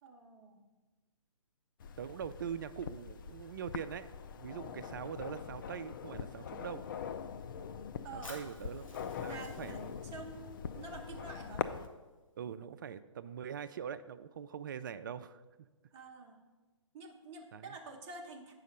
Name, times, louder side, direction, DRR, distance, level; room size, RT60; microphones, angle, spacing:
voice 1, 0.0-0.6 8.0-8.3 9.3-9.8 10.1-11.7 15.9-16.4 16.9-18.5, right 3 dB, 20° right, 1 dB, 1.0 m, -48 dB
sound 1, 1.8-11.9, left 7 dB, 40° left, 0.4 m, -43 dB
voice 2, 2.0-6.8 8.1-8.9 9.2-9.9 12.4-15.4 17.5-17.8, right 8 dB, 40° right, 13 dB, 0.4 m, -43 dB
Fire, 8.2-12.2, left 1 dB, 80° left, 2.2 m, -55 dB
8.2 x 5.7 x 5.3 m, 1.2 s
figure-of-eight pair, 140°, 17 cm